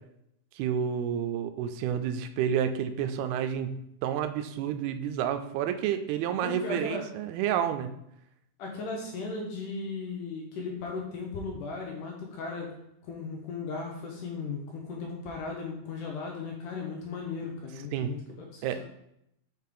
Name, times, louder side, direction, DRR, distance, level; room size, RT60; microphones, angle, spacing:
voice 1, 0.6-7.9 17.9-18.2 18.6-18.8, right 9 dB, 85° right, 8 dB, 2.4 m, -30 dB
voice 2, 6.4-7.0 8.6-12.7 13.1-18.8, left 4 dB, 75° left, 0 dB, 2.0 m, -36 dB
5.7 x 5.0 x 3.7 m, 0.79 s
omnidirectional pair, 4.5 m